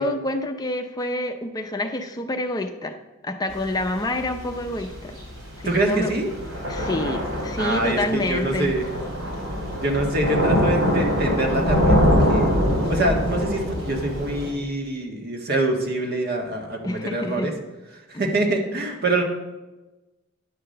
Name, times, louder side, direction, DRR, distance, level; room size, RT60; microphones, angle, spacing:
voice 1, 0.0-3.0 3.2-5.2 5.6-6.1 6.7-8.7 16.8-17.5 18.1-18.2, left 1 dB, 20° left, 5 dB, 0.5 m, -27 dB
Thunder / Rain, 3.5-14.5, equal, 80° right, 3.4 m, -24 dB
voice 2, 5.6-6.3 7.6-8.8 9.8-12.5 12.9-17.5 17.9-19.2, right 1 dB, 55° right, 2 dB, 1.5 m, -25 dB
10.0 x 5.8 x 6.5 m, 1.1 s
head